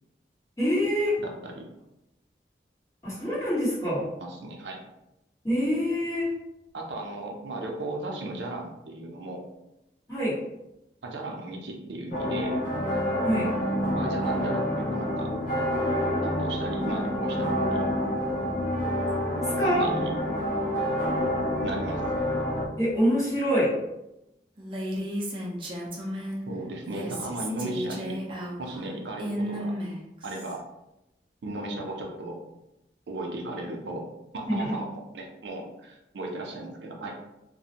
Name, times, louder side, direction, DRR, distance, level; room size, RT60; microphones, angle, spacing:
voice 1, 0.6-1.2 3.0-4.1 5.4-6.3 10.1-10.4 13.2-13.5 19.4-19.9 22.8-23.7 34.5-34.7, equal, 20° left, -11 dB, 1.2 m, -25 dB
voice 2, 1.2-1.7 4.2-4.8 6.7-9.4 11.0-12.6 13.9-15.4 16.2-18.0 19.6-20.1 21.6-22.0 26.5-28.2 28.6-29.7 30.2-30.6 31.4-32.4 33.1-34.1 34.3-37.2, right 2 dB, 85° right, 1 dB, 0.5 m, -36 dB
sound 1, 12.1-22.7, equal, 45° left, 0.5 m, -28 dB
Female speech woman speaking, 24.6-26.4 26.8-30.6, equal, 30° right, 0.4 m, -33 dB
2.4 x 2.1 x 2.7 m, 0.89 s
head